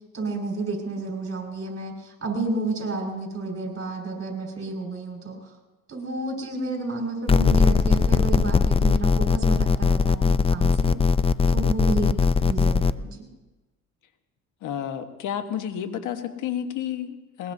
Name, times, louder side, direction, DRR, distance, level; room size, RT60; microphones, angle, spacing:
voice 1, 0.1-5.5 5.9-11.0 11.5-12.1 12.4-13.2, right 3 dB, 50° right, 0 dB, 5.5 m, -31 dB
sound 1, 7.3-12.9, left 5 dB, 20° left, 0.4 m, -20 dB
voice 2, 14.6-17.5, left 9 dB, 85° left, 7 dB, 1.4 m, -31 dB
21.0 x 21.0 x 2.8 m, 1.1 s
cardioid pair, 90°, 30 cm